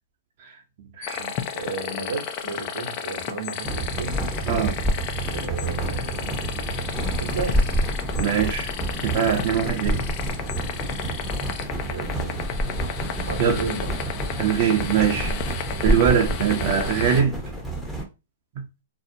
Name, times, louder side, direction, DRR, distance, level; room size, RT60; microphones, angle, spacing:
sound 1, 1.0-17.2, left 8 dB, 40° left, 0.4 m, -33 dB
voice 1, 1.0-1.3 4.5-4.8 8.1-8.7 9.0-10.0 13.4-13.6 14.4-15.5 15.8-17.4 18.6-18.7, right 8 dB, 50° right, 0.5 m, -22 dB
voice 2, 1.5-4.2 5.3-6.4 7.2-7.7 9.5-9.7 11.8-12.3 13.2-13.9, right 5 dB, 80° right, 0.8 m, -33 dB
sound 2, 3.6-18.0, right 1 dB, 5° left, 0.7 m, -28 dB
2.6 x 2.0 x 2.6 m
hypercardioid pair, 125°, 0 cm